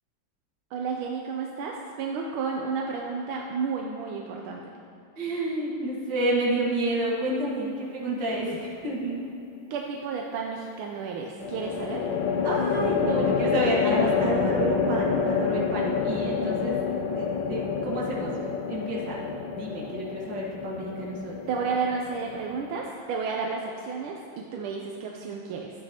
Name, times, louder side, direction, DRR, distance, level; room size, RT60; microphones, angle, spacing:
voice 1, 0.7-4.6 9.7-12.0 21.5-25.7, right 5 dB, 85° right, 0 dB, 1.5 m, -32 dB
voice 2, 5.2-9.2 12.4-16.8 17.1-18.4 18.7-19.2 19.5-21.4, right 1 dB, 60° right, -4 dB, 2.3 m, -30 dB
sound 1, 8.3-8.9 11.4-22.8, left 5 dB, 70° left, 1.3 m, -28 dB
13.5 x 8.8 x 2.9 m, 2.6 s
omnidirectional pair, 2.2 m